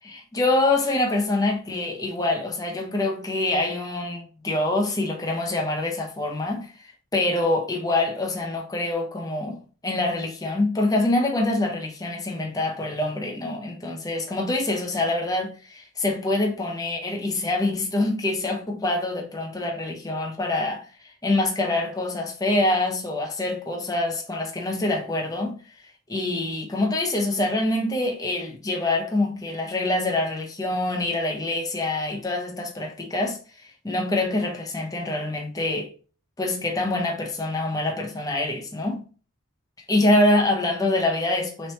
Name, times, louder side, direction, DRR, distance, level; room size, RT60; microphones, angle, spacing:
voice 1, 0.0-6.7 7.1-20.9 21.2-25.6 26.1-33.4 33.8-35.9 36.4-39.1 39.9-41.7, left 2 dB, 15° left, 0.6 m, -25 dB
4.2 x 3.1 x 3.1 m
head